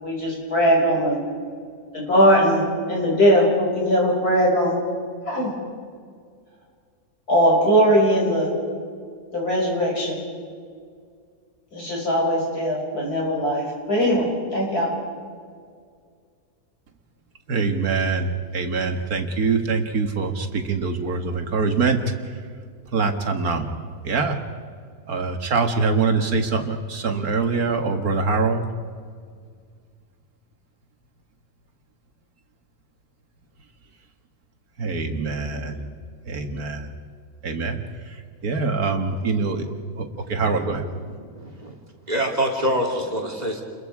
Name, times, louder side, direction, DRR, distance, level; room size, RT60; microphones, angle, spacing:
voice 1, 0.0-1.2 1.9-4.8 5.3-5.5 7.3-8.5 9.3-10.2 11.7-14.9, equal, 85° left, -2 dB, 6.6 m, -20 dB
voice 2, 17.5-22.0 22.9-23.7 24.0-24.4 25.1-28.7 34.8-35.9 36.3-36.9 37.4-38.2 38.4-39.7 40.0-40.9, right 4 dB, 75° right, 5 dB, 2.2 m, -24 dB
voice 3, 41.2-41.7 42.1-43.6, equal, 25° right, 0 dB, 3.0 m, -26 dB
30.0 x 22.5 x 4.9 m, 2.1 s
omnidirectional pair, 1.6 m